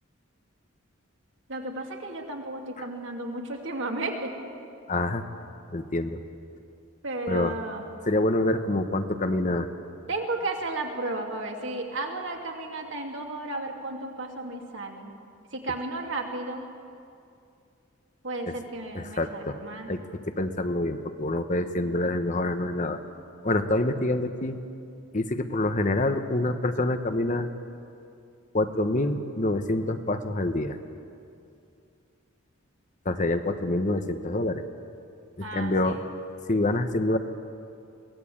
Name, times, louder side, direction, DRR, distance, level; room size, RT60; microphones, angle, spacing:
voice 1, 1.5-4.3 7.0-7.8 10.1-15.1 15.5-16.7 18.2-19.9 35.4-36.0, right 2 dB, 60° right, 2 dB, 2.7 m, -33 dB
voice 2, 4.9-5.2 5.7-6.2 7.3-7.5 8.1-9.7 18.9-19.6 19.9-23.0 23.4-24.6 25.1-27.5 28.5-30.8 33.0-34.6 35.4-36.0 36.5-37.2, left 2 dB, 35° left, 8 dB, 1.0 m, -26 dB
23.0 x 17.5 x 8.6 m, 2.5 s
head